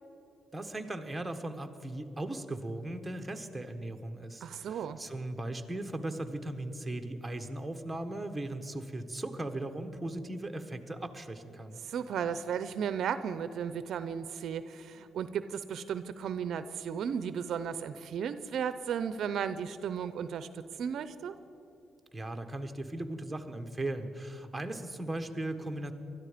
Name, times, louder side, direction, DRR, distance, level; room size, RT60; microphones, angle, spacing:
voice 1, 0.5-11.8 22.1-25.9, right 1 dB, 10° right, 5 dB, 1.3 m, -38 dB
voice 2, 4.4-5.0 11.8-21.3, right 7 dB, 70° right, 12 dB, 0.6 m, -35 dB
20.0 x 13.0 x 5.1 m, 2.9 s
cardioid pair, 90°, 0 cm